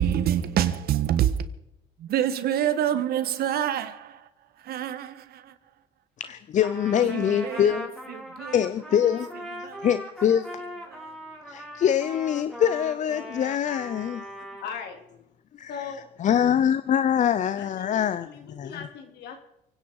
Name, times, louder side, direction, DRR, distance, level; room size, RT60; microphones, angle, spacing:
voice 1, 0.0-1.3 2.0-4.2 4.6-5.5 7.0-7.7 8.1-8.6 9.5-9.9 10.9-11.0, right 10 dB, 65° right, 1.5 m, -26 dB
voice 2, 6.2-7.9 8.5-9.3 9.8-10.5 11.5-14.2 15.6-15.7 16.2-18.3 18.6-18.7, left 9 dB, 45° left, 0.7 m, -24 dB
Trumpet, 6.6-14.7, equal, ahead, 4.6 m, -40 dB
voice 3, 14.6-15.0 15.7-16.1 17.6-19.4, left 7 dB, 75° left, 3.6 m, -38 dB
30.0 x 10.0 x 4.8 m
cardioid pair, 110°, 17 cm